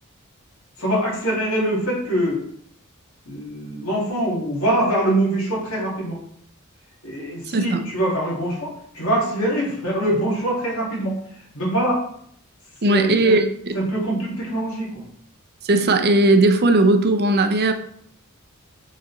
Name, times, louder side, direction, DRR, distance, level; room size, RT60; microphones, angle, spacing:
voice 1, 0.8-2.4 3.3-6.2 7.0-12.0 12.9-13.4 13.7-15.0, right 1 dB, 70° left, -5 dB, 2.8 m, -24 dB
voice 2, 7.5-7.8 12.8-13.7 15.6-17.7, right 2 dB, 50° right, 7 dB, 0.7 m, -17 dB
6.1 x 4.2 x 4.2 m, 0.67 s
head